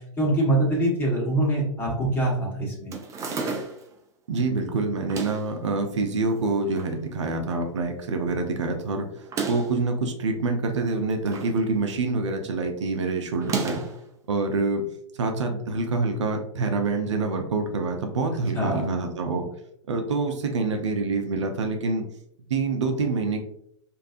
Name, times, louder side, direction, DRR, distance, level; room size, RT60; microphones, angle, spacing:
voice 1, 0.0-2.9 18.5-18.9, right 1 dB, 15° left, -5 dB, 1.4 m, -24 dB
sound 1, 2.9-3.9 5.0-5.5 6.3-7.0 7.3-7.4 7.6-7.7 9.2-9.8 10.8-11.6 11.9-12.2 13.4-14.0, right 4 dB, 20° right, 0.5 m, -32 dB
voice 2, 4.3-9.1 9.4-13.8 14.3-14.8 15.2-19.4 19.9-22.1 22.5-23.4, right 3 dB, 70° right, 4 dB, 0.6 m, -26 dB
3.2 x 2.5 x 2.5 m, 0.72 s
figure-of-eight pair, 110°, 16 cm